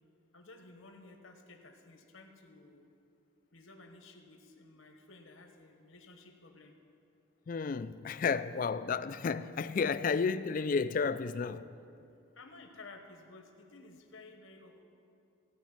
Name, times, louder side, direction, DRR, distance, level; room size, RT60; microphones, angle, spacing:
voice 1, 0.3-2.9 3.5-6.7 12.3-14.8, left 3 dB, 80° left, 1.3 m, -54 dB
voice 2, 7.5-11.6, left 5 dB, 40° left, 0.3 m, -32 dB
15.5 x 5.3 x 9.1 m
head